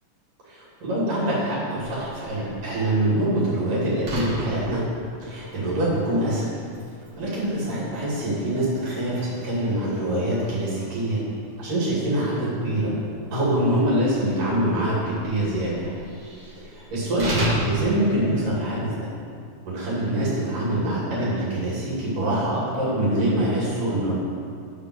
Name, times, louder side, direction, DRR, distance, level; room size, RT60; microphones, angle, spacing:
voice 1, 0.4-4.8 5.2-6.5 7.2-11.2 11.6-12.9 13.3-15.9 16.7-19.1 19.7-24.1, right 1 dB, 85° right, -8 dB, 4.3 m, -24 dB
Slam, 1.8-18.9, equal, 40° right, 2.7 m, -36 dB
11.0 x 5.3 x 6.3 m, 2.3 s
omnidirectional pair, 3.7 m